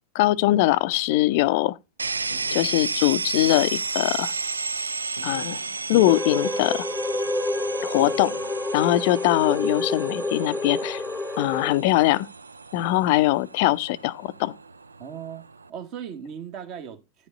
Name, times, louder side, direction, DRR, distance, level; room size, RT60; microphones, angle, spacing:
voice 1, 0.1-1.8 2.5-4.3 5.2-5.6 5.9-6.9 7.8-8.3 8.7-11.0 11.4-12.3 12.7-14.5, left 17 dB, 50° left, 0.4 m, -22 dB
sound 1, 2.0-15.7, right 4 dB, 75° right, 0.3 m, -33 dB
sound 2, 2.3-4.6 5.2-7.4 8.0-8.5, left 1 dB, 80° left, 0.7 m, -46 dB
sound 3, 6.1-11.7, left 2 dB, ahead, 0.8 m, -28 dB
voice 2, 15.0-15.4 15.7-17.3, right 8 dB, 40° right, 1.4 m, -37 dB
10.0 x 5.2 x 3.9 m
figure-of-eight pair, 90°, 0 cm